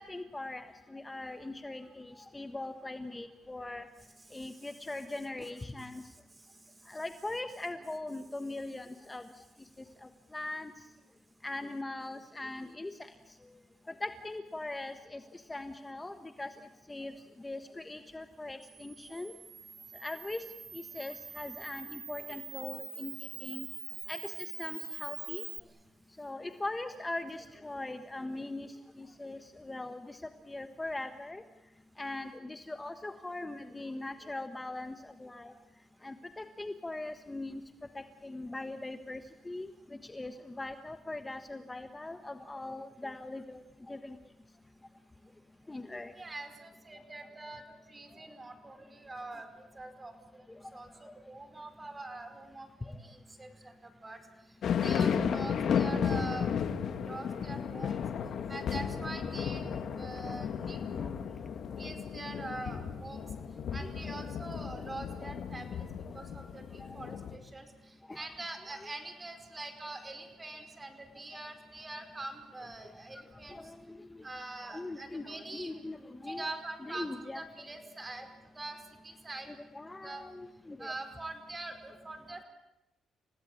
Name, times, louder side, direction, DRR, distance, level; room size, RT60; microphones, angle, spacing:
voice 1, 0.0-3.8 4.3-6.0 6.9-9.2 10.0-10.7 11.4-13.1 14.0-16.5 16.9-19.3 20.0-20.4 20.7-23.7 24.1-25.4 26.2-30.2 30.5-31.4 32.0-35.5 36.0-37.6 37.9-43.6 43.9-44.2 45.7-46.1 50.6-50.8 52.8-52.9 60.3-60.5 62.5-62.6 63.8-63.9 68.1-68.3 68.7-68.9 73.5-74.2 74.7-76.5 76.8-77.4 79.5-80.9, left 2 dB, 15° left, 8 dB, 1.4 m, -41 dB
Camera, 18.6-25.6, right 6 dB, 50° right, 0.9 m, -44 dB
voice 2, 46.2-47.6 47.9-50.5 50.7-54.2 54.8-58.0 58.5-59.6 59.9-61.1 61.8-63.2 63.7-65.9 66.1-73.7 74.2-77.1 77.3-78.3 78.5-78.8 79.0-79.5 80.0-80.2 80.8-82.4, right 2 dB, 20° right, 8 dB, 5.0 m, -44 dB
sound 1, 54.6-67.4, left 7 dB, 65° left, 2.2 m, -34 dB
29.5 x 17.5 x 8.7 m, 0.95 s
cardioid pair, 90°, 0 cm